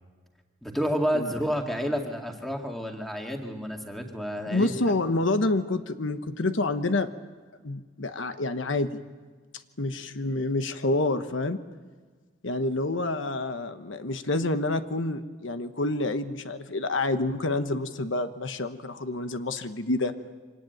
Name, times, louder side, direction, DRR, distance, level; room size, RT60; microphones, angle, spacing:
voice 1, 0.6-4.7, equal, ahead, 2 dB, 2.1 m, -30 dB
voice 2, 4.4-7.1 7.6-9.0 9.8-11.6 12.4-20.1, left 2 dB, 85° left, 9 dB, 1.1 m, -28 dB
24.5 x 18.5 x 9.2 m, 1.4 s
head